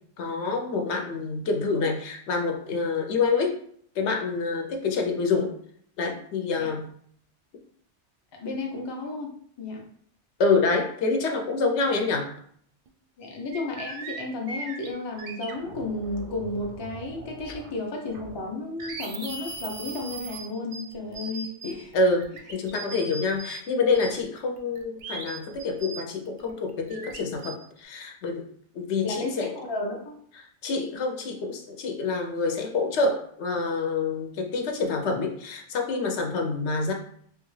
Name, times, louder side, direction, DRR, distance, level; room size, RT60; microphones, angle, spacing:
voice 1, 0.2-3.5 4.0-5.5 6.0-6.9 10.4-12.3 17.5-17.6 21.9-28.5 28.7-29.5 30.6-36.9, left 4 dB, 70° left, 3 dB, 0.9 m, -27 dB
voice 2, 8.3-9.3 9.6-9.8 13.2-22.0 29.0-30.2, left 2 dB, 40° left, 1 dB, 0.4 m, -33 dB
sound 1, 12.9-13.0 13.2-17.8 18.1-23.6 23.9-27.6, right 3 dB, 60° right, 0.6 m, -40 dB
3.4 x 2.3 x 3.1 m, 0.62 s
omnidirectional pair, 1.2 m